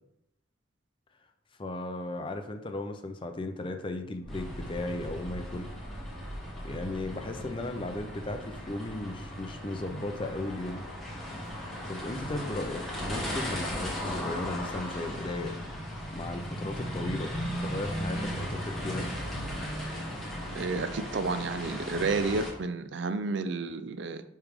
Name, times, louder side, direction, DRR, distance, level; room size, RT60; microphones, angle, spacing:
voice 1, 1.6-5.7 6.6-10.8 11.9-15.6 16.1-17.3 17.6-19.1, left 2 dB, 25° left, 6 dB, 0.5 m, -36 dB
sound 1, 4.2-9.3 9.7-9.8 11.1-19.7 20.5-20.6, equal, 65° left, 1.1 m, -48 dB
sound 2, 4.3-22.5, equal, ahead, 1.3 m, -37 dB
voice 2, 20.5-24.2, right 3 dB, 60° right, 11 dB, 0.4 m, -31 dB
9.7 x 3.3 x 3.6 m, 0.79 s
head